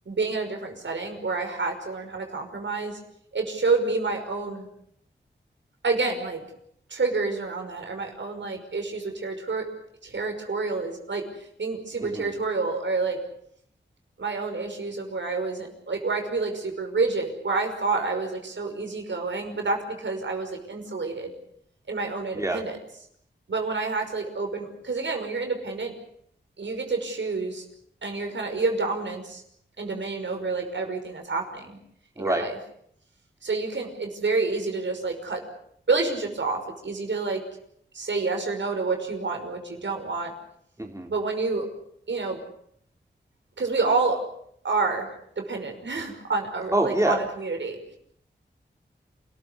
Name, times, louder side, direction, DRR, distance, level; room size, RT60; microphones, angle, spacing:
voice 1, 0.1-3.0 3.3-4.7 5.8-6.4 6.9-9.7 10.0-11.2 11.6-13.2 14.2-21.3 21.9-22.7 23.5-25.9 26.6-27.7 28.0-29.4 29.8-31.8 32.2-32.6 33.4-35.4 35.9-37.4 37.9-40.3 41.1-41.7 42.1-42.4 43.6-44.2 44.6-45.1 45.4-48.0, right 3 dB, 75° right, 4 dB, 5.6 m, -28 dB
voice 2, 32.2-32.5 40.8-41.1 46.7-47.2, right 1 dB, 15° right, 2 dB, 3.7 m, -25 dB
28.5 x 14.5 x 9.8 m, 0.70 s
wide cardioid pair, 70°, 19 cm